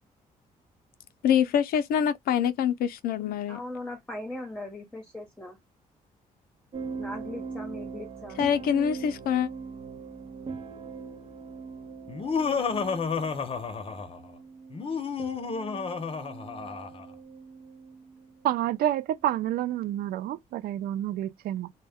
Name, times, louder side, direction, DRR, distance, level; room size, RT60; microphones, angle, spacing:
voice 1, 1.2-3.6 8.4-9.5, left 8 dB, 80° left, 0.4 m, -25 dB
voice 2, 3.5-5.6 7.0-8.4, left 1 dB, 5° left, 0.8 m, -39 dB
sound 1, 6.7-18.5 19.3-19.6, right 5 dB, 40° right, 0.6 m, -41 dB
Laughter, 12.1-14.2 14.7-17.0, left 5 dB, 40° left, 0.6 m, -31 dB
voice 3, 18.4-21.7, right 12 dB, 85° right, 0.4 m, -29 dB
2.1 x 2.1 x 3.4 m
cardioid pair, 100°, 15 cm